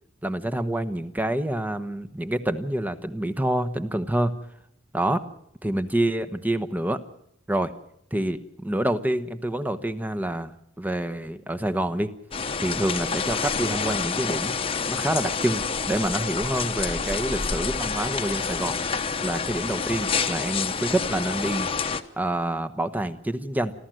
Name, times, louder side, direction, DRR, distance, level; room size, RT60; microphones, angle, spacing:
voice 1, 0.2-4.3 4.9-5.2 5.6-7.0 7.5-7.7 8.1-10.5 10.8-12.1 12.6-14.5 14.9-18.7 19.2-21.7 22.2-23.7, right 1 dB, 10° right, 9 dB, 1.1 m, -27 dB
sound 1, 12.3-22.0, left 5 dB, 25° left, 1.0 m, -28 dB
28.0 x 13.0 x 7.8 m, 0.72 s
head